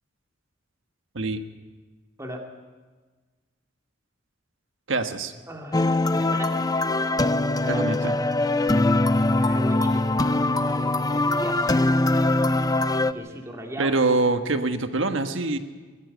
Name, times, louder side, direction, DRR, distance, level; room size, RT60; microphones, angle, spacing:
voice 1, 1.1-1.5 4.9-5.3 7.7-8.1 13.8-15.6, right 3 dB, 70° right, 7 dB, 1.4 m, -24 dB
voice 2, 5.5-6.5 7.4-7.9 9.2-10.1 10.6-11.6 13.1-14.0, equal, 15° right, 1 dB, 2.3 m, -37 dB
sound 1, 5.7-13.1, left 2 dB, 20° left, 0.6 m, -22 dB
21.0 x 14.0 x 9.4 m, 1.4 s
head